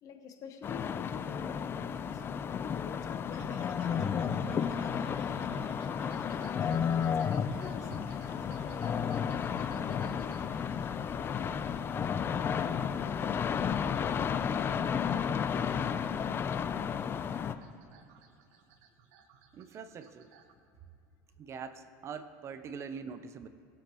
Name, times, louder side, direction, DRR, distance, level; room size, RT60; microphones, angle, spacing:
voice 1, 0.0-5.7 6.3-7.9 8.2-8.9 9.5-10.4, left 7 dB, 45° left, 5 dB, 1.2 m, -47 dB
sound 1, 0.6-17.5, left 7 dB, 30° left, 0.4 m, -32 dB
sound 2, 3.3-20.5, right 6 dB, 75° right, 0.9 m, -55 dB
voice 2, 19.5-20.3 21.4-23.5, right 6 dB, 35° right, 11 dB, 0.6 m, -44 dB
20.0 x 7.3 x 3.0 m, 2.4 s
supercardioid pair, 120°, 8 cm